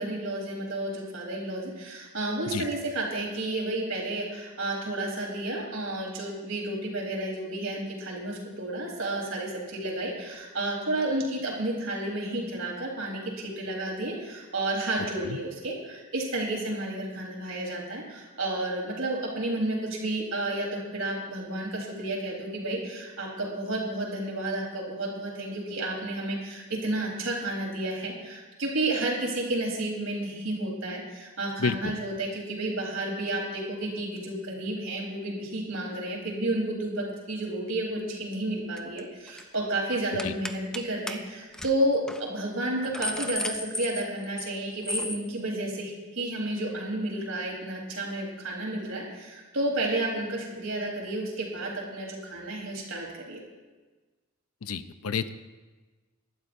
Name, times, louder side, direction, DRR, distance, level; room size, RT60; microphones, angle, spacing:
voice 1, 0.0-53.4, right 1 dB, 70° right, -2 dB, 3.9 m, -31 dB
voice 2, 31.6-31.9 40.2-40.3 54.6-55.3, left 5 dB, 85° left, 12 dB, 0.6 m, -30 dB
sound 1, 38.8-39.0 39.3-39.5 40.2-40.8 41.1-41.2 41.5-41.7 42.1-42.2 42.6-44.5 44.8-45.2, left 1 dB, 5° left, 0.4 m, -34 dB
22.5 x 12.0 x 2.7 m, 1.3 s
head